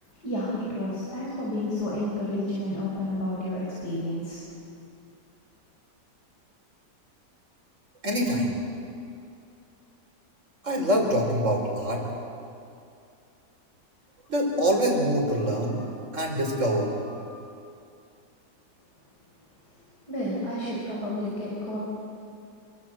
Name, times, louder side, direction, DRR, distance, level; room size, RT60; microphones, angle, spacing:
voice 1, 0.2-4.7 20.0-21.8, left 1 dB, 65° left, -6 dB, 6.1 m, -31 dB
voice 2, 8.0-8.5 10.6-12.0 14.3-15.9 16.1-17.4, equal, 45° right, 1 dB, 5.1 m, -25 dB
28.0 x 24.0 x 7.7 m, 2.5 s
omnidirectional pair, 1.9 m